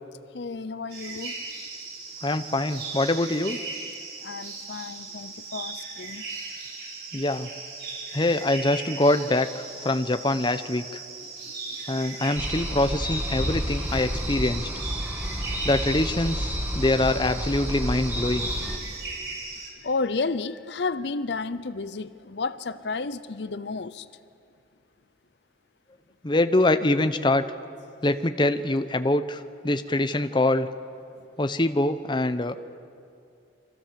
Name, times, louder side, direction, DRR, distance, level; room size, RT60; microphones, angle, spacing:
voice 1, 0.3-1.4 4.2-6.3 11.2-12.2 19.0-19.4 19.8-24.1, left 4 dB, 70° left, 15 dB, 0.7 m, -32 dB
sound 1, 0.9-19.7, right 4 dB, 60° right, 5.1 m, -38 dB
voice 2, 2.2-3.6 7.1-7.5 8.1-11.0 11.9-14.7 15.6-18.5 26.2-27.4 28.0-30.7 31.4-32.6, left 2 dB, 25° left, 10 dB, 0.9 m, -24 dB
sound 2, 12.4-18.8, equal, 10° right, 2.5 m, -30 dB
29.5 x 24.5 x 7.6 m, 2.5 s
head